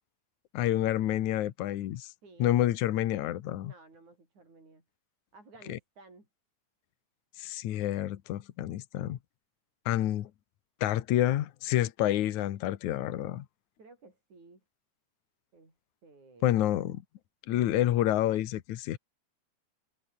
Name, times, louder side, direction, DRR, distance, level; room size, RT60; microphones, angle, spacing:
voice 1, 0.5-2.1 2.4-3.7 5.7-5.8 7.4-9.2 9.9-10.3 10.8-13.5 16.4-17.0 17.5-19.0, left 13 dB, 75° left, 2.6 m, -28 dB
voice 2, 2.2-2.6 3.6-4.8 5.3-6.3 13.8-14.6 15.5-15.7 16.0-16.6, right 3 dB, 70° right, 9.4 m, -55 dB
omnidirectional pair, 3.4 m